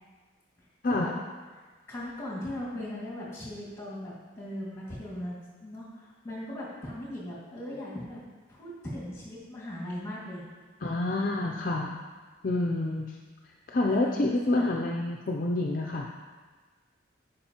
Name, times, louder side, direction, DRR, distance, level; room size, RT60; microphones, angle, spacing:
voice 1, 1.9-8.2 8.5-10.4 13.9-14.7, left 1 dB, 15° left, -6 dB, 2.0 m, -38 dB
voice 2, 10.8-12.0 12.4-13.1 13.7-16.1, left 2 dB, 45° left, 0 dB, 0.4 m, -28 dB
9.8 x 5.3 x 2.9 m, 1.4 s
head